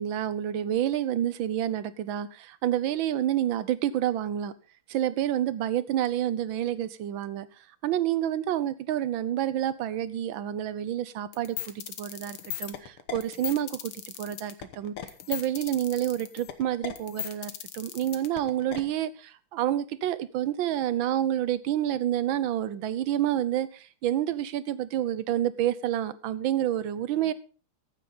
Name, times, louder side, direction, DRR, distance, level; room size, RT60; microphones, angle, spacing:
voice 1, 0.0-4.5 4.9-7.5 7.8-14.9 15.3-27.3, right 11 dB, 70° right, 16 dB, 1.6 m, -28 dB
sound 1, 11.3-18.8, left 10 dB, 80° left, 2.2 m, -37 dB
15.0 x 11.5 x 4.0 m, 0.35 s
omnidirectional pair, 2.4 m